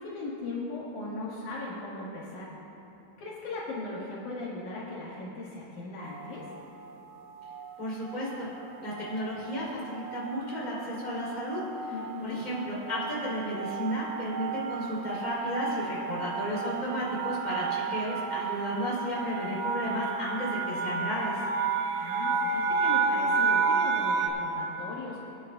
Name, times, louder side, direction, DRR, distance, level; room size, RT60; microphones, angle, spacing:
voice 1, 0.0-2.5 3.2-6.4 11.9-12.4 21.9-25.4, left 2 dB, 65° left, -7 dB, 2.8 m, -38 dB
sound 1, 6.2-6.6 7.4-7.8 8.1-8.3 8.5-24.3, right 5 dB, 85° right, 2.5 m, -31 dB
voice 2, 7.8-8.5 8.8-11.9 12.2-21.4, equal, 15° left, -6 dB, 2.7 m, -33 dB
23.0 x 10.5 x 2.3 m, 2.9 s
omnidirectional pair, 4.1 m